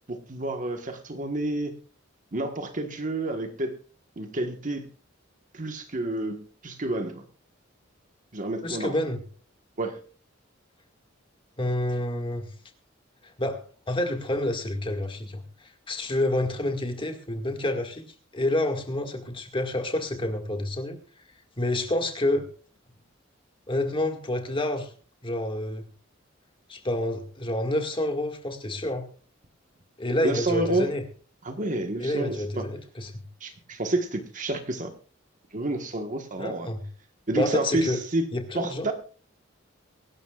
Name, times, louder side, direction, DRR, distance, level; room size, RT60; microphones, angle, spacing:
voice 1, 0.1-1.7 2.3-3.8 4.2-4.9 5.5-7.2 8.3-9.0 9.8-10.0 30.2-30.9 31.4-32.7 33.4-34.9 35.5-36.7 37.3-38.3 38.5-38.9, right 2 dB, 40° right, 6 dB, 1.4 m, -29 dB
voice 2, 8.6-9.2 11.6-12.5 13.4-18.0 18.3-21.0 21.6-22.5 23.7-24.9 25.2-25.9 26.7-29.0 30.0-31.0 32.0-33.2 36.4-36.8 37.3-38.0 38.3-38.9, left 1 dB, 25° left, 5 dB, 1.9 m, -28 dB
23.5 x 12.5 x 2.4 m, 0.40 s
head